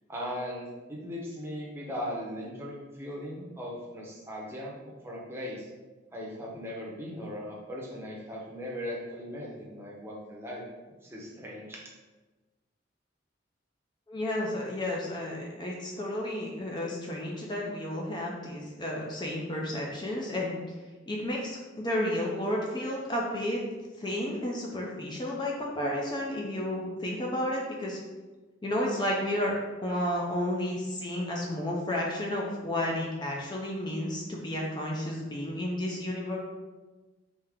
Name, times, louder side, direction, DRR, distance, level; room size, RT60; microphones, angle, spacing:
voice 1, 0.1-5.7 6.1-10.6 11.0-11.8, equal, 15° right, -4 dB, 0.7 m, -38 dB
voice 2, 14.1-20.6 21.1-23.6 24.0-28.0 28.6-29.5 29.8-36.4, left 1 dB, 25° left, -2 dB, 0.4 m, -32 dB
3.5 x 2.7 x 3.5 m, 1.2 s
head